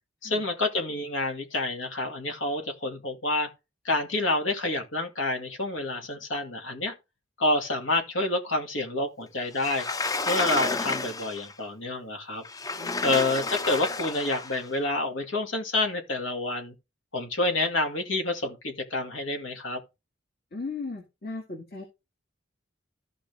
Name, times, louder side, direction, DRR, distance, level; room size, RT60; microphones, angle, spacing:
voice 1, 0.2-3.5 3.8-6.9 7.4-9.9 10.3-12.4 13.0-16.7 17.1-19.8, left 2 dB, 85° left, 2.2 m, -28 dB
Sliding door, 9.6-11.5 12.5-14.6, left 3 dB, 20° left, 0.4 m, -31 dB
voice 2, 12.8-13.1 20.5-21.8, left 3 dB, 55° left, 2.0 m, -37 dB
14.5 x 5.2 x 3.5 m
head